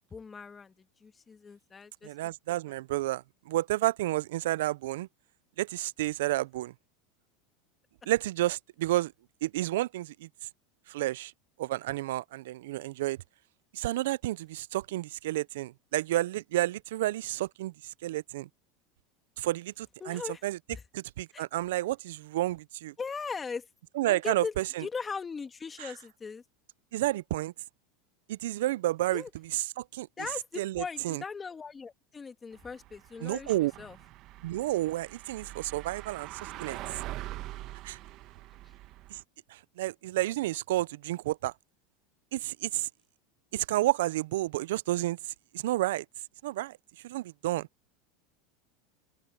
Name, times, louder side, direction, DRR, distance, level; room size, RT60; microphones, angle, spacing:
voice 1, 0.0-2.3 20.0-20.4 20.7-20.8 21.3-21.4 23.0-23.7 24.1-24.6 24.8-26.4 29.1-29.3 30.2-34.0 38.6-38.7, left 5 dB, 20° left, 2.1 m, -39 dB
voice 2, 2.0-5.1 5.6-6.7 8.1-9.1 9.4-10.3 10.9-11.3 11.6-13.2 13.7-17.7 18.0-18.5 19.4-20.6 20.9-22.9 24.0-24.8 25.8-25.9 26.9-27.5 28.3-29.2 29.5-30.1 30.6-31.2 33.2-33.7 34.4-36.8 37.8-38.0 39.1-39.2 39.5-41.5 42.3-42.9 43.5-45.2 45.5-46.0 46.4-46.8 47.0-47.7, right 16 dB, 80° right, 0.4 m, -31 dB
sound 1, 32.5-39.2, right 16 dB, 50° right, 1.2 m, -44 dB
open air
supercardioid pair, 115°, 0 cm